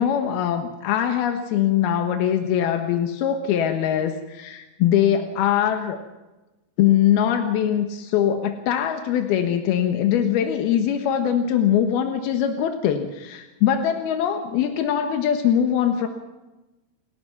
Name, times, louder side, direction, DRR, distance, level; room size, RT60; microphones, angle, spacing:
voice 1, 0.0-6.0 6.8-16.1, left 9 dB, 90° left, 6 dB, 3.3 m, -22 dB
29.0 x 17.0 x 5.9 m, 1.1 s
omnidirectional pair, 4.3 m